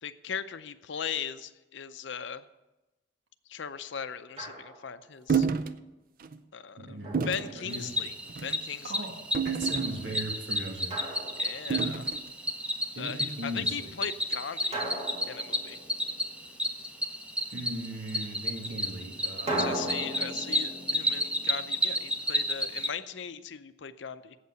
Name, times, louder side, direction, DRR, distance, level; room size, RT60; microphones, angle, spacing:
voice 1, 0.0-2.4 3.5-5.5 6.5-7.0 7.3-8.1 8.4-9.0 11.4-12.1 13.0-14.8 15.3-15.8 19.5-24.4, left 7 dB, 70° left, 12 dB, 0.6 m, -38 dB
Drum, 4.4-5.1 7.0-8.1 10.9-12.1 14.7-16.4 19.5-22.4, right 1 dB, 35° right, 2.1 m, -38 dB
sound 1, 5.3-5.7 6.2-6.4 7.1-7.5 8.3-8.6 9.3-10.3 11.7-12.2, right 6 dB, 50° right, 0.5 m, -29 dB
voice 2, 6.8-8.0 8.8-9.2 9.4-11.0 13.0-13.9 17.5-20.0, right 1 dB, 80° right, 1 dB, 2.0 m, -38 dB
Cricket, 7.7-22.9, equal, 5° right, 0.8 m, -32 dB
8.4 x 8.0 x 8.0 m, 1.1 s
head